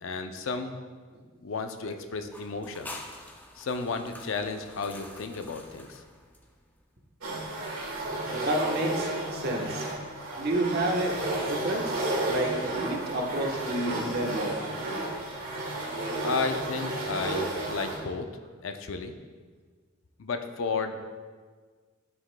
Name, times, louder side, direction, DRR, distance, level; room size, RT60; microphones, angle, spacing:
voice 1, 0.0-0.8 1.4-3.0 3.6-6.0 16.2-18.3 18.6-19.1 20.2-21.0, left 4 dB, 70° left, 7 dB, 0.5 m, -33 dB
sound 1, 2.2-6.8, left 1 dB, 10° left, 0.5 m, -47 dB
sound 2, 7.2-18.0, right 2 dB, 80° right, 1.8 m, -32 dB
voice 2, 8.3-9.9 10.4-11.2 11.5-12.0 12.2-14.6, right 1 dB, 50° right, 0 dB, 1.0 m, -30 dB
11.5 x 6.0 x 2.2 m, 1.5 s
head